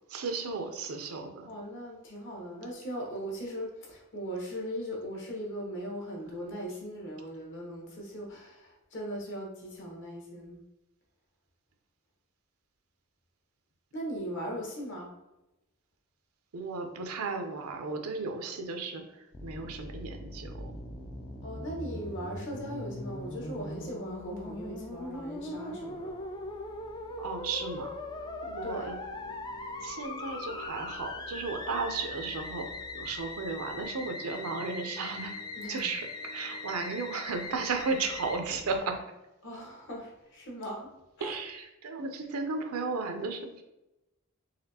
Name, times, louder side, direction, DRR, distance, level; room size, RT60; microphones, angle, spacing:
voice 1, 0.1-1.5 16.5-20.8 27.2-28.0 28.4-29.0 29.8-32.7 32.9-35.4 35.7-39.0 41.2-43.6, right 4 dB, 80° right, 5 dB, 0.6 m, -35 dB
voice 2, 1.5-10.6 13.9-15.1 21.4-26.1 28.6-28.9 35.6-35.9 39.4-40.9 41.2-41.4, equal, 60° left, -2 dB, 1.2 m, -39 dB
Musical instrument, 19.3-38.4, left 2 dB, 20° left, 0.3 m, -40 dB
sound 1, 21.8-38.8, equal, 90° left, 1.1 m, -51 dB
4.1 x 3.2 x 2.8 m, 0.94 s
head